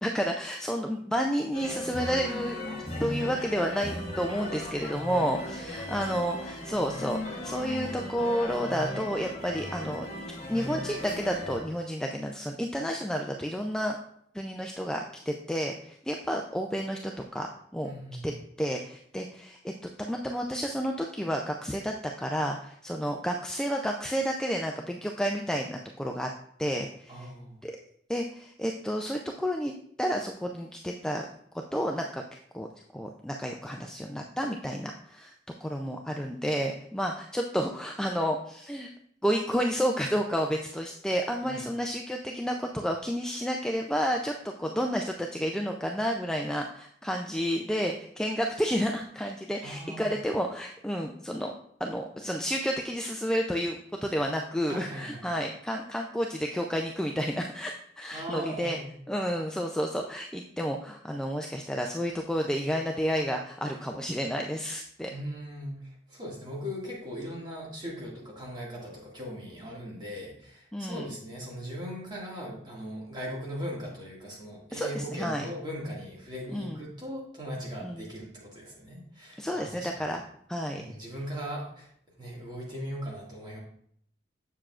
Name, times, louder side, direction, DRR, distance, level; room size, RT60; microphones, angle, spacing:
voice 1, 0.0-2.6 3.0-10.1 10.5-14.0 14.3-17.5 17.7-17.9 18.2-18.3 18.6-19.7 20.0-21.9 22.2-26.3 26.6-27.3 27.6-27.7 28.1-29.7 30.0-31.3 31.7-32.2 32.5-32.7 32.9-35.3 35.6-38.9 39.2-51.5 51.8-58.8 59.1-65.1 70.7-71.1 74.7-75.4 76.5-76.8 77.8-78.1 79.4-80.2 80.5-80.9, equal, 5° left, 2 dB, 0.3 m, -31 dB
sound 1, 1.5-11.6, left 1 dB, 35° left, 1.1 m, -37 dB
voice 2, 17.8-18.3 27.1-27.6 41.4-41.6 49.6-50.1 54.7-55.3 58.1-58.9 65.1-80.1 80.7-81.9 82.2-83.6, equal, 25° right, -4 dB, 1.9 m, -39 dB
7.4 x 6.9 x 2.4 m, 0.66 s
head